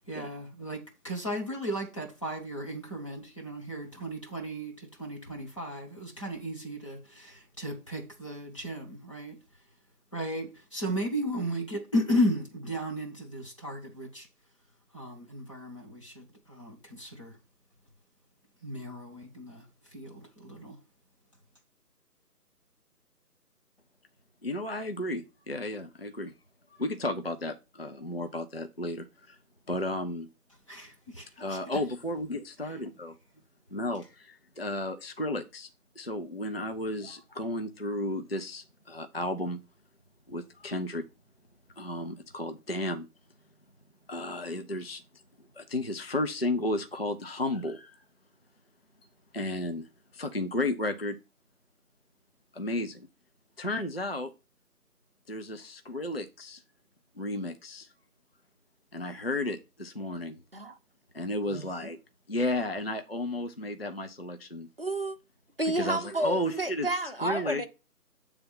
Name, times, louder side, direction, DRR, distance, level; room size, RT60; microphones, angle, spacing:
voice 1, 0.1-9.4 10.1-14.3 14.9-17.4 18.6-20.8 30.7-31.6 32.6-32.8, equal, 20° left, 1.1 m, -35 dB
voice 2, 24.4-26.3 26.8-29.4 29.7-30.3 31.4-33.1 33.7-35.7 36.0-39.6 40.3-41.1 41.8-43.1 44.1-45.0 45.6-48.0 49.3-49.9 50.1-51.2 52.5-53.1 53.6-54.3 55.3-56.6 57.2-57.9 58.9-60.4 61.1-62.0 62.3-64.7 65.7-66.9 67.2-67.6, left 1 dB, 40° left, 0.5 m, -33 dB
voice 3, 64.8-65.2 65.6-67.7, right 1 dB, 40° right, 0.7 m, -30 dB
8.3 x 3.4 x 5.4 m
figure-of-eight pair, 160°, 47 cm